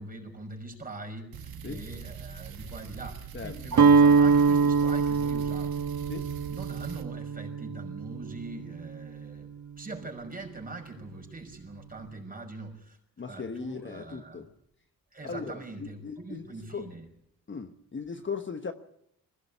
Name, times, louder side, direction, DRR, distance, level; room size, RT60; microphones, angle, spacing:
voice 1, 0.0-5.9 6.5-9.5 9.8-13.0 13.3-14.5 15.1-17.1, right 2 dB, 25° right, 5.8 m, -42 dB
sound 1, 1.3-7.1, right 7 dB, 85° right, 1.9 m, -42 dB
Guitar, 3.7-9.8, right 5 dB, 55° right, 1.7 m, -24 dB
voice 2, 13.2-14.5 15.2-16.9 17.5-18.7, left 5 dB, 35° left, 1.2 m, -38 dB
21.0 x 17.0 x 8.4 m
cardioid pair, 90°, 35 cm